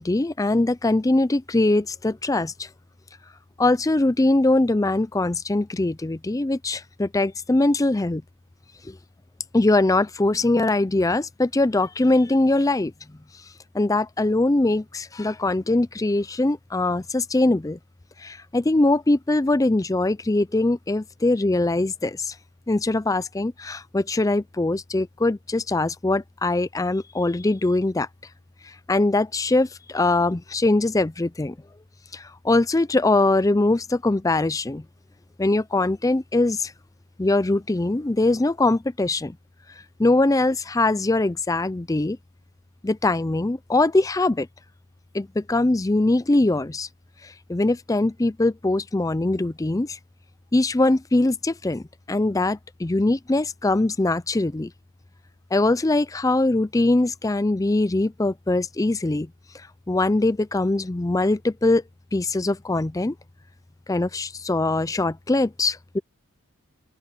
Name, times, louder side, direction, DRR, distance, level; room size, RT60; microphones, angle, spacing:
voice 1, 0.0-2.7 3.6-8.2 8.8-9.0 9.5-12.9 13.7-17.8 18.2-22.4 22.7-28.1 28.6-31.6 32.1-34.8 35.4-36.7 37.2-39.4 40.0-42.2 42.8-44.5 45.1-46.9 47.2-50.0 50.5-54.7 55.5-59.3 59.9-61.8 62.1-63.2 63.9-66.0, left 2 dB, 15° left, 0.4 m, -22 dB
open air
head